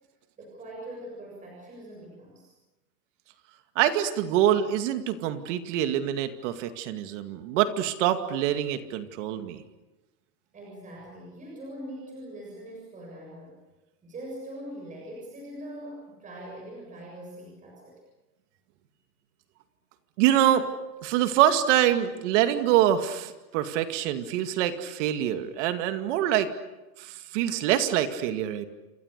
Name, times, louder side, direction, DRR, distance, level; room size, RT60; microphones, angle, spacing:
voice 1, 0.4-2.5 10.5-13.6 14.0-18.0, right 1 dB, 15° right, -2 dB, 7.1 m, -42 dB
voice 2, 3.8-9.6 20.2-20.7 21.0-26.5 27.0-28.7, right 11 dB, 50° right, 8 dB, 2.3 m, -25 dB
28.5 x 25.5 x 6.7 m, 1.1 s
supercardioid pair, 150°, 46 cm